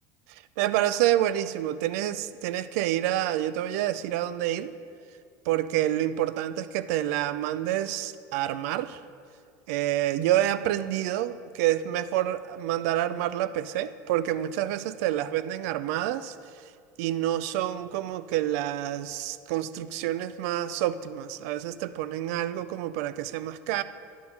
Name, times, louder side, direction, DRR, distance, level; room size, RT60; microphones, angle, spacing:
voice 1, 0.3-4.7 5.5-9.0 9.7-16.4 17.0-23.8, right 13 dB, 80° right, 15 dB, 0.3 m, -28 dB
10.0 x 4.3 x 5.5 m, 2.2 s
supercardioid pair, 135°, 9 cm